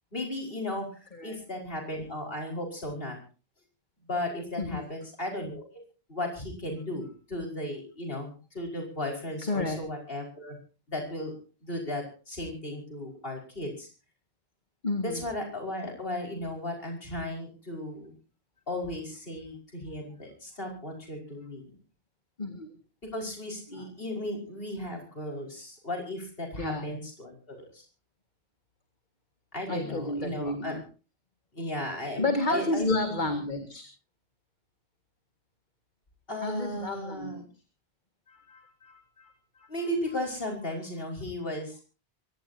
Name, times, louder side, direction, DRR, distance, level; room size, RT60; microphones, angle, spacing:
voice 1, 0.1-3.2 4.1-5.7 6.1-10.6 10.9-11.3 11.6-13.9 15.0-18.1 18.7-21.6 23.1-27.8 29.5-30.7 31.5-33.2 36.3-37.5 39.7-41.8, left 1 dB, 65° left, 2 dB, 5.5 m, -35 dB
voice 2, 9.5-9.8 14.8-15.2 22.4-22.8 23.7-23.9 26.6-26.9 29.7-30.8 32.2-33.9 36.4-37.4 38.3-39.7, left 2 dB, 50° left, 6 dB, 2.1 m, -31 dB
24.0 x 18.0 x 2.8 m, 0.35 s
omnidirectional pair, 1.0 m